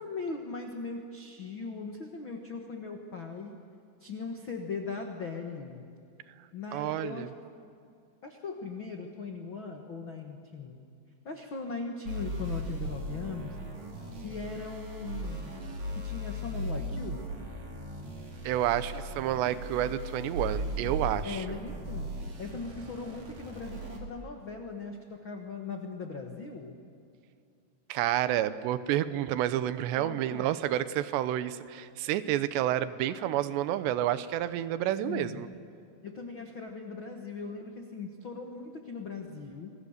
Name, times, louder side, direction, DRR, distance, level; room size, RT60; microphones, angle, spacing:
voice 1, 0.0-3.6 4.0-5.8 6.5-7.3 8.2-10.8 11.2-13.6 14.1-15.6 15.9-17.2 18.9-19.0 21.2-22.1 22.4-26.8 30.0-30.6 35.0-35.5 36.0-39.7, left 4 dB, 70° left, 3 dB, 1.1 m, -39 dB
voice 2, 6.7-7.3 18.4-21.6 27.9-35.5, right 12 dB, 85° right, 13 dB, 3.1 m, -29 dB
sound 1, 12.1-24.0, right 1 dB, 45° right, 4.3 m, -38 dB
29.0 x 23.0 x 6.6 m, 2.4 s
omnidirectional pair, 4.9 m